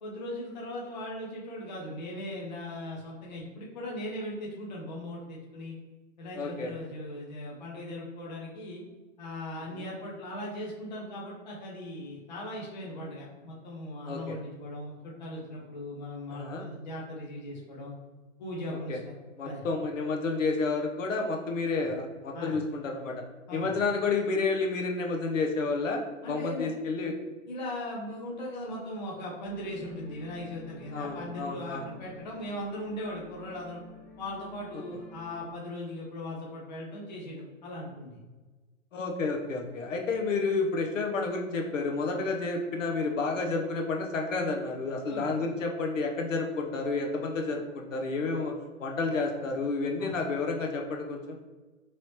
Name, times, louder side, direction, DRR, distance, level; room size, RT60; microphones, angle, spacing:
voice 1, 0.0-5.8 6.2-8.8 9.2-17.9 18.4-19.1 19.4-19.6 21.8-21.9 22.3-22.6 23.5-23.8 26.2-26.7 27.5-33.8 34.2-38.2 45.1-45.3 50.0-50.1, left 1 dB, 35° left, -4 dB, 0.5 m, -39 dB
voice 2, 6.3-6.7 9.7-9.9 14.1-14.4 16.3-16.6 18.9-19.0 19.4-23.2 23.5-26.0 26.3-27.1 30.9-31.8 38.9-48.5 48.8-51.4, left 3 dB, 70° left, 2 dB, 0.7 m, -30 dB
sound 1, 29.4-35.5, left 3 dB, 5° right, 0.7 m, -50 dB
3.0 x 2.7 x 3.1 m, 1.3 s
hypercardioid pair, 170°, 39 cm